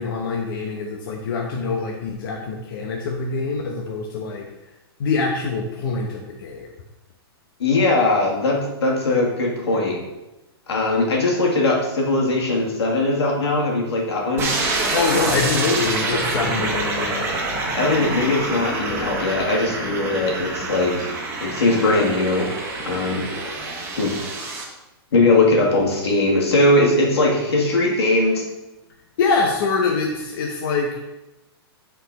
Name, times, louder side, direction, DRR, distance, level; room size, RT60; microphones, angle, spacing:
voice 1, 0.0-4.5 5.0-6.7 14.9-17.3 29.2-31.0, left 4 dB, 55° left, 0 dB, 1.0 m, -24 dB
voice 2, 7.6-10.0 10.7-14.5 17.7-21.1 21.4-22.5 22.8-23.2 24.0-24.1 25.1-28.4, left 2 dB, 85° left, -1 dB, 2.3 m, -20 dB
sound 1, 14.4-24.6, right 2 dB, 20° right, 1.4 m, -26 dB
8.7 x 4.6 x 4.1 m, 1.0 s
hypercardioid pair, 150°, 13 cm